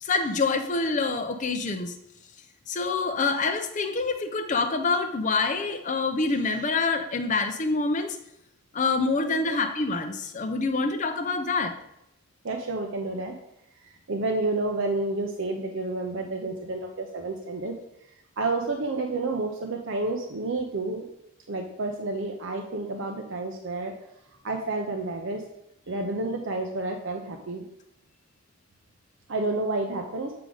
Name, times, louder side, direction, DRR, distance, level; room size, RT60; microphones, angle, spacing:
voice 1, 0.0-1.9 2.7-8.2 8.7-11.7, left 3 dB, 35° left, 7 dB, 0.5 m, -26 dB
voice 2, 12.4-13.3 14.1-17.7 18.4-21.0 21.5-23.9 24.4-25.4 25.9-27.6 29.3-30.3, right 2 dB, 60° right, 2 dB, 0.6 m, -30 dB
7.6 x 4.8 x 3.9 m, 0.81 s
head